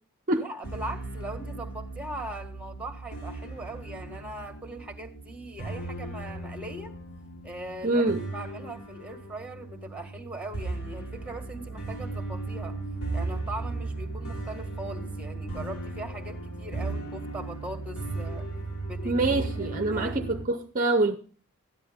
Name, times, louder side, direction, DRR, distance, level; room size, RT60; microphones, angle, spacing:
voice 1, 0.3-6.9 7.4-8.0 8.3-12.8 13.1-18.5 18.9-20.3, right 1 dB, 5° right, 1.6 m, -40 dB
sound 1, 0.6-20.4, right 2 dB, 70° left, 3.5 m, -36 dB
voice 2, 7.8-8.2 19.0-21.2, right 2 dB, 35° right, 0.7 m, -25 dB
13.5 x 10.5 x 3.6 m
head